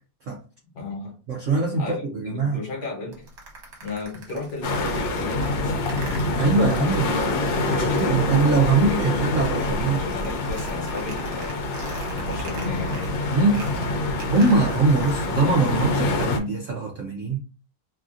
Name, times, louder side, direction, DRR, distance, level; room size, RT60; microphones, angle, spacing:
voice 1, 0.7-1.1 1.8-3.3 3.8-5.7 6.1-6.4 7.6-11.6 12.1-13.1, left 3 dB, 65° left, -1 dB, 1.5 m, -35 dB
voice 2, 1.3-2.6 6.3-10.0 13.3-13.7 14.3-17.4, right 3 dB, 90° right, 0 dB, 0.6 m, -22 dB
sound 1, 3.1-9.1 9.4-15.3, right 1 dB, 60° right, 1.3 m, -41 dB
sound 2, 4.6-16.4, left 2 dB, 85° left, 1.3 m, -26 dB
3.2 x 2.4 x 2.5 m, 0.34 s
omnidirectional pair, 2.0 m